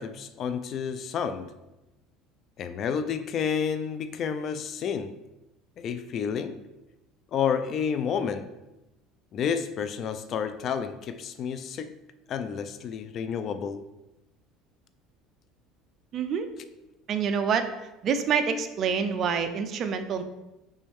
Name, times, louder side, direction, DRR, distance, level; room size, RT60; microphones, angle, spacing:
voice 1, 0.0-1.5 2.6-5.2 5.8-6.6 7.3-8.5 9.3-11.9 12.3-13.8, left 7 dB, 40° left, 11 dB, 0.4 m, -30 dB
voice 2, 16.1-16.5 17.1-17.7 18.0-20.2, right 6 dB, 40° right, 8 dB, 0.5 m, -26 dB
5.4 x 5.3 x 3.5 m, 0.98 s
cardioid pair, 135°, 0 cm